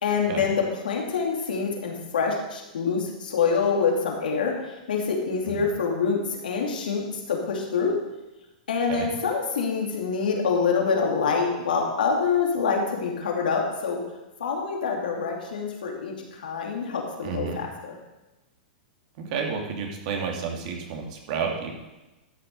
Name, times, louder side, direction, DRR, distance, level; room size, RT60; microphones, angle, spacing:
voice 1, 0.0-4.5 4.9-7.9 8.7-14.0 14.4-17.9, left 5 dB, 85° left, 0 dB, 2.6 m, -26 dB
voice 2, 17.2-17.6 19.2-21.7, right 6 dB, 55° right, 1 dB, 2.5 m, -31 dB
12.5 x 6.5 x 5.4 m, 1.0 s
hypercardioid pair, 130°, 5 cm